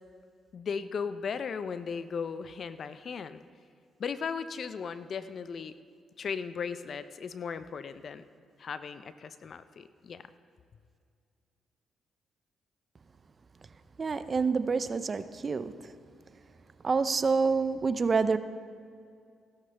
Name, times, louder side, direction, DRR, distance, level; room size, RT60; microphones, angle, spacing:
voice 1, 0.5-3.4 4.0-5.7 6.2-8.2 8.6-10.2, left 6 dB, 55° left, 12 dB, 0.5 m, -36 dB
voice 2, 14.0-15.8 16.8-18.4, right 4 dB, 35° right, 12 dB, 0.5 m, -27 dB
16.0 x 13.0 x 3.4 m, 2.3 s
cardioid pair, 85°, 0 cm